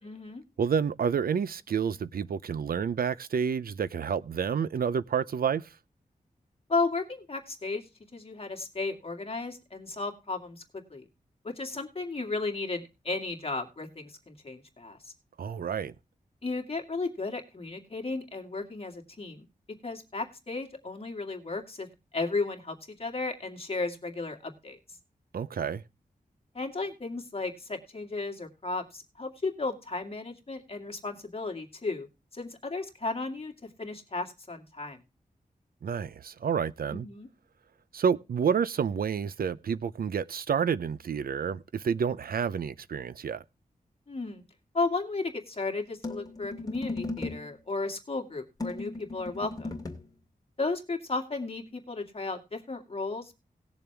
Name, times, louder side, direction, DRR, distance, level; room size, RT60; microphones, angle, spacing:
voice 1, 0.0-0.4 6.7-7.8 8.1-10.6 10.9-11.0 11.4-15.1 16.4-19.5 19.8-21.9 22.1-24.8 26.5-32.1 32.3-33.5 33.8-35.0 36.9-37.3 44.1-44.4 44.7-49.7 50.6-53.3, left 3 dB, 40° left, 2.2 m, -34 dB
voice 2, 0.6-5.7 15.4-15.9 25.3-25.8 35.8-37.1 37.9-43.4, right 7 dB, 90° right, 0.6 m, -29 dB
sound 1, 46.0-47.5 48.6-50.1, left 2 dB, 25° left, 2.4 m, -37 dB
18.5 x 7.0 x 3.4 m
wide cardioid pair, 135°, 15 cm